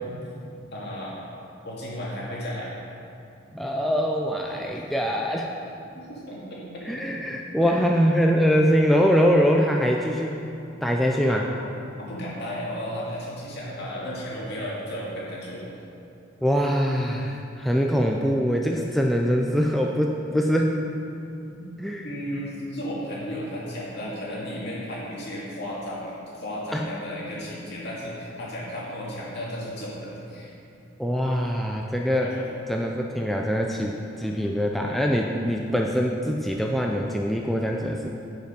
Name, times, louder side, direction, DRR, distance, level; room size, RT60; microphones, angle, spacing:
voice 1, 0.7-1.2 1.6-2.7 4.5-4.8 5.9-7.1 7.6-7.7 11.3-11.4 12.0-15.7 21.5-21.7 22.0-30.5 32.2-32.4, equal, 55° left, -6 dB, 2.2 m, -34 dB
voice 2, 3.5-5.5 6.9-10.4 10.8-11.5 16.4-20.8 21.8-22.1 26.7-26.9 31.0-32.3 32.7-38.1, equal, ahead, 0 dB, 0.4 m, -23 dB
9.1 x 5.3 x 5.1 m, 2.7 s
head